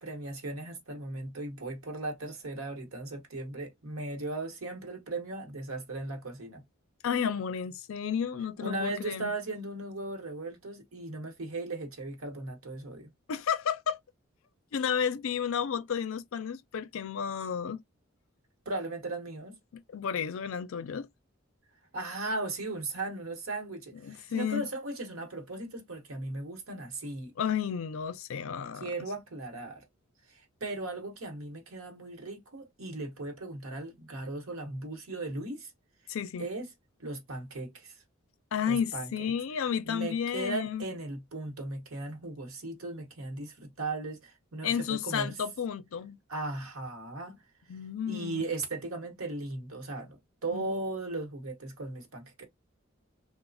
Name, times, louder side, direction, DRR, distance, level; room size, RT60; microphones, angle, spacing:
voice 1, 0.0-6.6 8.6-13.1 18.6-19.5 21.9-27.3 28.8-29.8 30.3-35.7 36.4-36.7 37.0-37.9 38.7-39.3 39.8-45.3 46.3-47.4 48.1-52.5, right 2 dB, 85° right, 0.9 m, -37 dB
voice 2, 7.0-9.3 13.3-14.0 14.7-17.8 19.7-21.1 24.0-24.6 27.4-28.9 36.1-36.5 38.5-40.8 44.6-46.2 47.7-48.4 50.5-50.7, left 7 dB, 75° left, 0.4 m, -32 dB
3.1 x 2.0 x 2.4 m
head